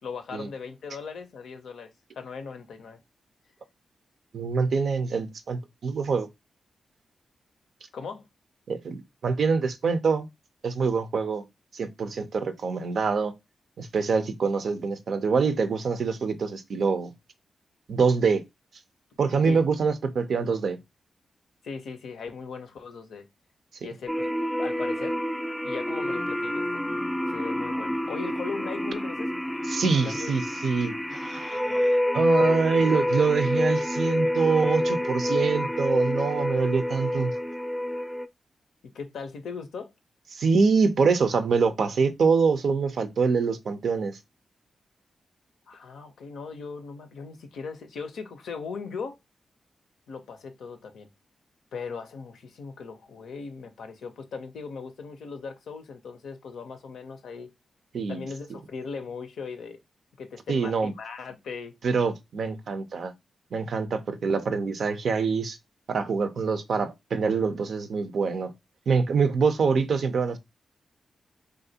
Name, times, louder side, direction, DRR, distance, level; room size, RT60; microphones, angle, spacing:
voice 1, 0.0-3.0 7.9-8.3 19.4-19.6 21.6-23.3 23.8-24.3 24.6-25.2 25.6-26.8 27.3-29.3 29.9-30.3 38.9-39.9 45.7-49.2 50.1-51.1 51.7-57.5 58.1-59.8 60.2-61.8, left 5 dB, 80° left, 0.5 m, -38 dB
voice 2, 4.3-6.3 8.7-10.3 10.6-11.4 11.7-13.3 13.8-17.1 17.9-18.4 19.2-20.8 23.8-23.9 29.7-31.6 32.1-37.3 40.3-44.2 57.9-58.3 60.5-60.9 61.8-63.1 63.5-65.6 65.9-68.5 68.9-70.4, right 5 dB, 70° right, 0.4 m, -25 dB
sound 1, 24.1-38.3, left 1 dB, 10° left, 0.4 m, -28 dB
3.2 x 2.5 x 2.7 m
supercardioid pair, 40°, 0 cm